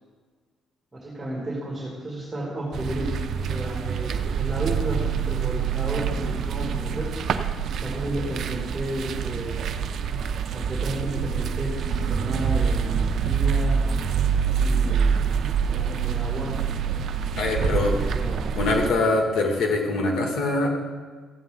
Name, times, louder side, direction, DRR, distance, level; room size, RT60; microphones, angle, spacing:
voice 1, 1.0-7.2 7.8-9.6 10.5-13.9 14.6-15.2 15.6-16.6 17.6-18.5, right 1 dB, 15° right, -3 dB, 2.3 m, -32 dB
sound 1, 2.7-18.9, right 6 dB, 60° right, 0.6 m, -26 dB
voice 2, 17.4-17.9 18.6-20.7, left 2 dB, 75° left, 1 dB, 2.1 m, -23 dB
14.5 x 8.5 x 3.8 m, 1.5 s
cardioid pair, 125°, 0 cm